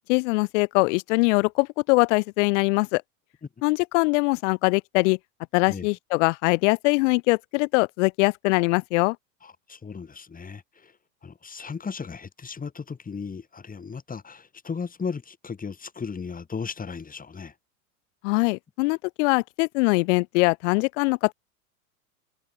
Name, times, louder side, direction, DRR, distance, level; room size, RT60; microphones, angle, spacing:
voice 1, 0.1-3.0 3.6-5.2 5.5-9.2 18.2-21.3, left 27 dB, 55° left, 2.0 m, -22 dB
voice 2, 9.4-10.9 11.2-17.5, left 5 dB, 20° left, 7.5 m, -36 dB
hypercardioid pair, 95°, 42 cm